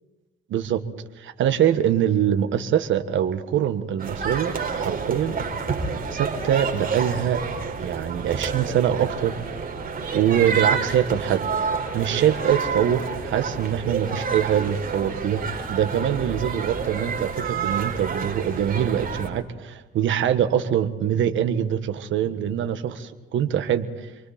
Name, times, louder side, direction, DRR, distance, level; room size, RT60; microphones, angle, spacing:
voice 1, 0.5-0.8 1.2-5.4 6.1-7.4 7.8-9.3 10.1-11.5 11.9-23.9, right 9 dB, 75° right, 9 dB, 1.5 m, -23 dB
sound 1, 4.0-19.3, right 5 dB, 45° right, 4.8 m, -29 dB
28.5 x 23.5 x 4.3 m, 1.0 s
cardioid pair, 90°, 20 cm